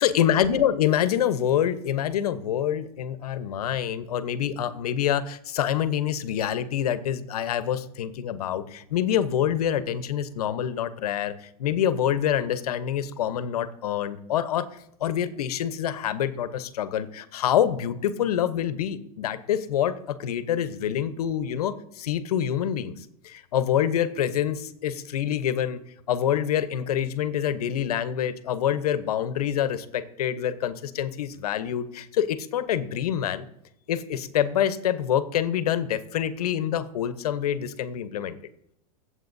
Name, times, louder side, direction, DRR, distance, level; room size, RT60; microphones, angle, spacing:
voice 1, 0.0-25.8 26.1-33.5 33.9-38.4, left 10 dB, 90° left, 12 dB, 0.9 m, -26 dB
22.5 x 8.0 x 2.7 m, 0.78 s
supercardioid pair, 125°, 19 cm